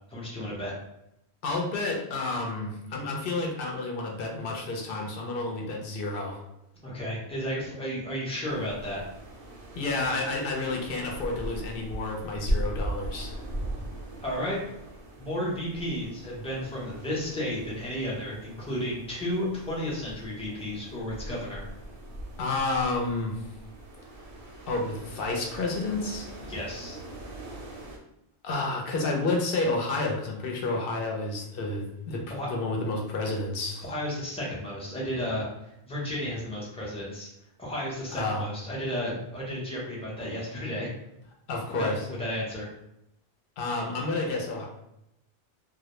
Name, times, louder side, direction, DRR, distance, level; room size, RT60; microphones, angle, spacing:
voice 1, 0.1-0.7 6.8-9.0 14.2-14.6 15.2-21.6 26.5-27.0 32.3-32.5 33.8-37.3 37.6-40.9 41.8-42.7, equal, 10° left, -6 dB, 0.5 m, -33 dB
voice 2, 1.4-6.4 9.7-13.4 22.4-23.4 24.7-26.3 28.4-33.9 38.1-38.5 41.5-42.1 43.6-44.7, left 2 dB, 65° left, 0 dB, 0.7 m, -30 dB
sound 1, 8.5-28.0, right 1 dB, 65° right, 0.7 m, -39 dB
2.1 x 2.0 x 2.9 m, 0.82 s
omnidirectional pair, 1.1 m